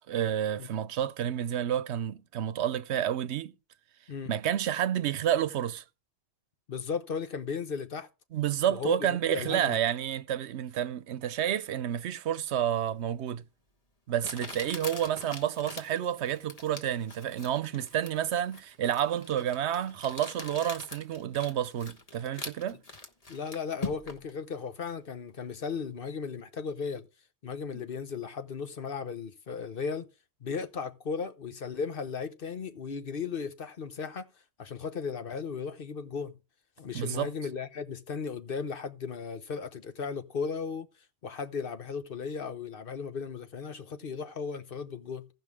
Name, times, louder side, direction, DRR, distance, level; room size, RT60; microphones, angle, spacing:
voice 1, 0.1-3.5 4.3-5.8 8.3-13.4 14.1-22.8 27.7-27.8 36.9-37.3, right 10 dB, 90° right, 1.0 m, -30 dB
voice 2, 6.7-8.1 8.7-9.0 9.3-9.8 23.3-27.1 27.4-30.1 30.4-34.3 34.6-36.3 36.8-40.9 41.2-45.3, left 5 dB, 55° left, 1.1 m, -36 dB
Crumpling crinkling, 13.3-13.4 14.2-24.3, left 3 dB, 35° left, 1.5 m, -43 dB
16.5 x 5.7 x 3.5 m
omnidirectional pair, 1.1 m